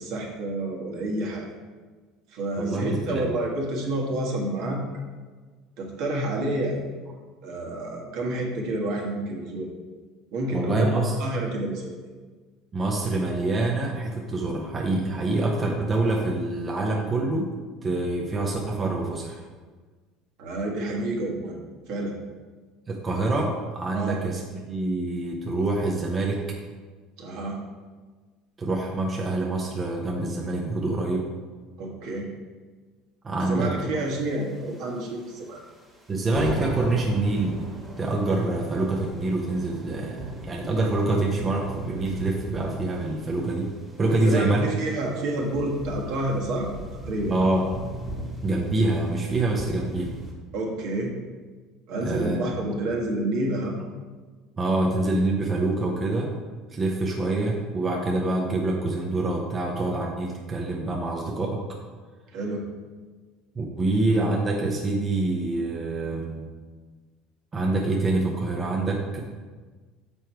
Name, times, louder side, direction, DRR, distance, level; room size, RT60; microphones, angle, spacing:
voice 1, 0.0-1.5 2.3-4.8 5.8-6.9 7.4-9.7 10.3-12.0 20.4-21.5 21.9-22.1 23.9-24.2 27.2-27.6 31.8-32.3 33.4-35.6 44.1-46.7 47.0-47.3 50.5-51.1 51.9-53.8 62.3-62.7, right 1 dB, 65° right, -1 dB, 1.6 m, -29 dB
voice 2, 2.6-3.4 10.5-11.1 12.7-17.5 17.8-19.4 22.9-24.4 24.7-26.4 28.6-31.3 33.2-33.7 36.1-37.7 38.0-43.7 44.0-44.6 47.3-47.8 48.4-50.1 52.0-52.4 54.6-56.3 56.7-61.6 63.6-66.4 67.5-69.2, right 2 dB, 20° right, 0 dB, 0.8 m, -26 dB
sound 1, 34.1-35.1 35.4-35.6 35.9-36.1 36.3-50.3, right 1 dB, 5° right, 1.6 m, -38 dB
7.0 x 4.6 x 4.6 m, 1.4 s
cardioid pair, 135°, 0 cm